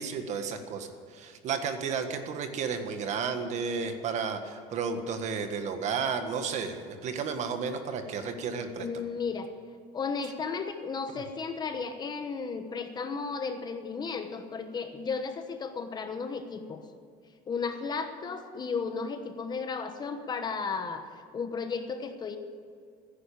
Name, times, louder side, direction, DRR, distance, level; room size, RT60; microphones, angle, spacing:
voice 1, 0.0-9.0, right 5 dB, 45° right, 7 dB, 1.6 m, -32 dB
voice 2, 8.8-9.5 9.9-16.8 17.5-21.0 21.3-22.4, left 5 dB, 25° left, 7 dB, 1.1 m, -34 dB
15.5 x 10.5 x 8.6 m, 2.3 s
cardioid pair, 155°, 16 cm